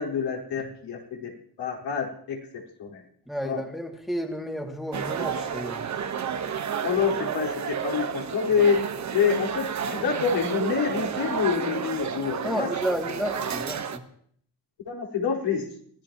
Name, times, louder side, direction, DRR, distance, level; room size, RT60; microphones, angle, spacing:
voice 1, 0.0-1.3 1.6-3.0 3.4-3.6 6.8-8.8 9.1-12.7 14.9-15.6, left 6 dB, 80° left, -2 dB, 4.6 m, -27 dB
voice 2, 3.3-5.8 12.4-14.0, equal, ahead, 1 dB, 2.4 m, -31 dB
sound 1, 4.9-14.0, right 7 dB, 40° right, 1.3 m, -31 dB
24.5 x 16.0 x 3.0 m, 0.62 s
cardioid pair, 100°, 41 cm